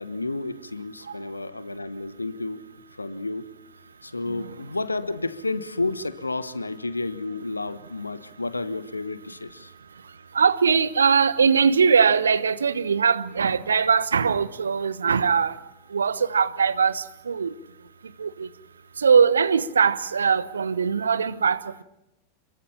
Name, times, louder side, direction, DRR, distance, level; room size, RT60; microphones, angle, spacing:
voice 1, 0.0-2.6 3.0-3.5 4.0-9.7, left 3 dB, 80° left, 1.2 m, -31 dB
voice 2, 10.3-15.5 15.9-17.5 18.2-18.5 19.0-21.8, right 6 dB, 70° right, 1.0 m, -21 dB
27.5 x 23.0 x 7.2 m
figure-of-eight pair, 90°, 0 cm